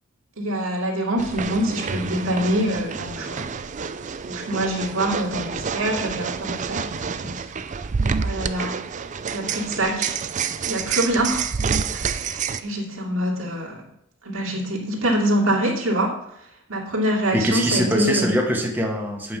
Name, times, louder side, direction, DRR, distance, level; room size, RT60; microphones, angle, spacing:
voice 1, 0.4-3.5 4.3-7.5 8.2-8.8 9.3-10.2 10.7-11.5 11.9-13.8 14.2-16.1 16.7-18.3, right 1 dB, 85° right, -1 dB, 2.4 m, -25 dB
sound 1, 1.2-12.6, right 6 dB, 35° right, 0.4 m, -28 dB
voice 2, 17.3-19.4, equal, 10° right, 0 dB, 1.2 m, -23 dB
8.8 x 5.3 x 7.4 m, 0.78 s
head